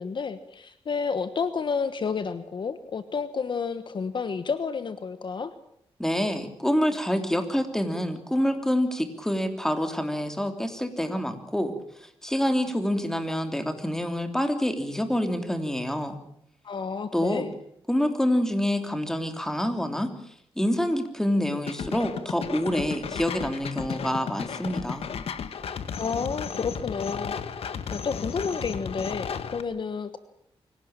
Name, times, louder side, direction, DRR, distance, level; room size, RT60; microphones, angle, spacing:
voice 1, 0.0-5.5 16.6-17.5 26.0-27.4 27.9-30.2, left 5 dB, 50° left, 12 dB, 1.3 m, -30 dB
voice 2, 6.0-16.2 17.1-17.5 17.9-25.1, equal, 5° left, 7 dB, 3.2 m, -27 dB
sound 1, 21.7-29.6, left 6 dB, 75° left, 1.8 m, -34 dB
24.5 x 17.5 x 9.0 m, 0.73 s
wide cardioid pair, 115°, 10 cm